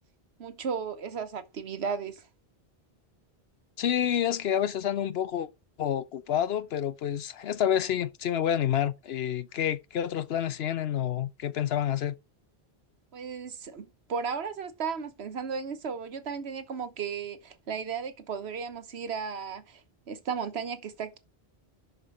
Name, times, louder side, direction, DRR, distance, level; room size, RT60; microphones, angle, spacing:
voice 1, 0.4-2.3 13.1-21.2, right 6 dB, 90° right, 1.3 m, -35 dB
voice 2, 3.8-5.5 5.8-12.1, left 10 dB, 75° left, 1.0 m, -28 dB
6.9 x 6.3 x 6.1 m
omnidirectional pair, 1.1 m